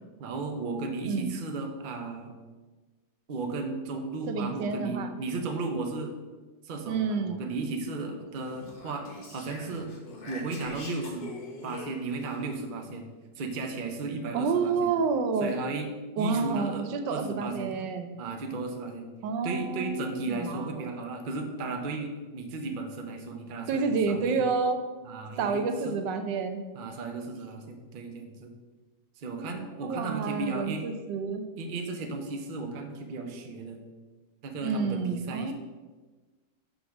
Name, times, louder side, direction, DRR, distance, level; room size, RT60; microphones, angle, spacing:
voice 1, 0.2-2.3 3.3-6.1 6.6-9.9 10.3-11.3 11.6-13.0 13.4-14.9 15.4-15.9 16.2-17.9 18.2-19.1 19.4-24.4 25.0-26.0 26.7-28.5 29.2-30.8 31.6-33.8 34.4-35.5, right 3 dB, 45° right, 4 dB, 0.6 m, -35 dB
voice 2, 4.3-5.1 6.9-7.4 14.3-15.5 16.2-18.1 19.2-20.9 23.7-24.8 25.4-26.6 29.4-31.4 34.6-35.5, right 4 dB, 80° right, 8 dB, 1.3 m, -29 dB
Speech, 8.5-12.4, left 2 dB, 60° left, 1.9 m, -44 dB
6.5 x 4.0 x 5.8 m, 1.3 s
omnidirectional pair, 1.9 m